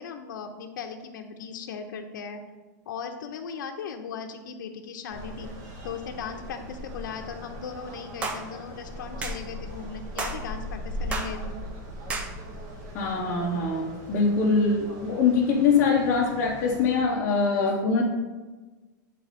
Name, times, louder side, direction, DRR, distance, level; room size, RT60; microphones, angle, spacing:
voice 1, 0.0-2.4 2.9-5.5 5.8-11.5, left 6 dB, 80° left, 5 dB, 0.7 m, -37 dB
sound 1, 5.1-17.0, equal, 35° right, 1.0 m, -39 dB
sound 2, 8.2-8.4 9.2-9.4 10.2-10.4 11.1-11.3 12.1-12.3, right 3 dB, 10° right, 0.4 m, -31 dB
voice 2, 12.9-18.0, left 4 dB, 20° left, -5 dB, 0.7 m, -23 dB
8.7 x 4.0 x 4.1 m, 1.3 s
supercardioid pair, 175°, 10 cm